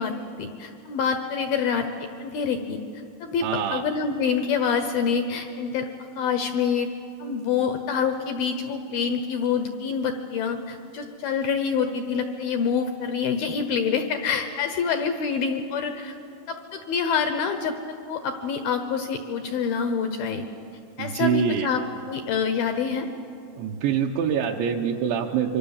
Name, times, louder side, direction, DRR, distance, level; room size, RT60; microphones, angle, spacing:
voice 1, 0.0-2.8 3.2-5.9 6.2-6.9 7.2-16.2 16.5-20.5 21.0-21.8 22.1-23.1, left 6 dB, 80° left, 7 dB, 2.1 m, -26 dB
voice 2, 3.4-3.8 21.0-21.7 23.5-25.6, right 7 dB, 75° right, 1 dB, 3.0 m, -25 dB
27.0 x 24.5 x 7.2 m, 2.7 s
omnidirectional pair, 5.6 m